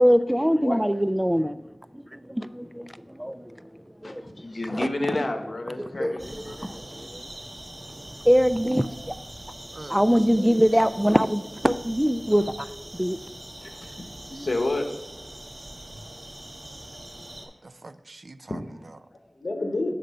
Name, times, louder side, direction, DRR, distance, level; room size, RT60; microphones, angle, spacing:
voice 1, 0.0-1.6 1.9-3.7 4.0-4.3 4.7-4.9 5.8-7.3 8.2-9.1 9.9-13.2, equal, 5° right, 13 dB, 0.3 m, -23 dB
voice 2, 4.0-6.6 13.6-14.9 18.5-18.6 19.1-19.9, left 2 dB, 70° left, 5 dB, 1.1 m, -30 dB
sound 1, 6.2-17.5, right 1 dB, 45° right, 1.6 m, -42 dB
voice 3, 9.7-10.2 10.7-10.9 17.6-19.0, right 2 dB, 65° right, 11 dB, 0.5 m, -45 dB
9.9 x 3.9 x 5.6 m, 1.0 s
wide cardioid pair, 60°, 0 cm